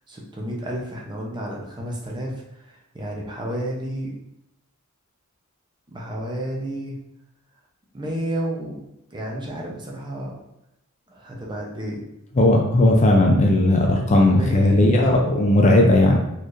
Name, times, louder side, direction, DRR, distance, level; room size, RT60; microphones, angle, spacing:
voice 1, 0.1-4.1 5.9-7.0 7.9-8.8 9.1-10.4 11.1-12.0 14.3-14.9, right 1 dB, 20° right, -2 dB, 0.7 m, -31 dB
voice 2, 12.4-16.2, left 1 dB, 30° left, 1 dB, 0.4 m, -16 dB
4.0 x 3.2 x 2.5 m, 0.83 s
head